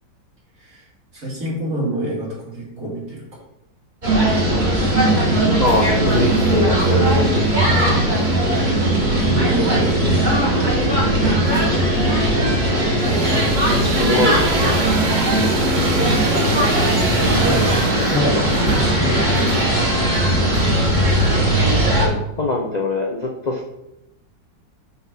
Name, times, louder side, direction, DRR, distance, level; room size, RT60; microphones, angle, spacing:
voice 1, 1.1-3.3 9.2-10.0 14.0-14.7 17.4-17.6 18.1-19.6 20.3-20.8, equal, 50° right, -5 dB, 2.7 m, -26 dB
sound 1, 4.0-22.1, right 1 dB, 25° right, 1.8 m, -18 dB
voice 2, 5.6-8.0 13.9-14.3 22.0-23.7, left 2 dB, 75° left, -1 dB, 0.3 m, -22 dB
sound 2, 5.6-21.3, right 4 dB, 70° right, 0.8 m, -28 dB
5.7 x 4.1 x 6.0 m, 0.87 s
omnidirectional pair, 1.9 m